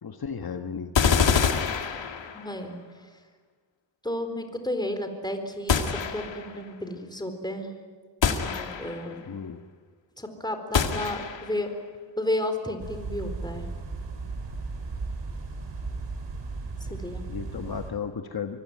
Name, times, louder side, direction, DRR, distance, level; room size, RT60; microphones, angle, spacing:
voice 1, 0.0-0.9 9.3-9.6 17.3-18.6, left 6 dB, 55° left, 5 dB, 1.5 m, -34 dB
sound 1, 0.9-2.6 5.7-6.6 8.2-9.1 10.7-11.6, left 6 dB, 85° left, 2.2 m, -25 dB
voice 2, 2.3-2.8 4.0-7.7 8.4-9.2 10.2-11.7 12.2-13.7 16.8-17.2, left 1 dB, 10° left, 6 dB, 4.2 m, -32 dB
sound 2, 12.8-17.9, right 3 dB, 75° right, 4.8 m, -35 dB
24.5 x 24.5 x 9.4 m, 1.5 s
wide cardioid pair, 95°, 43 cm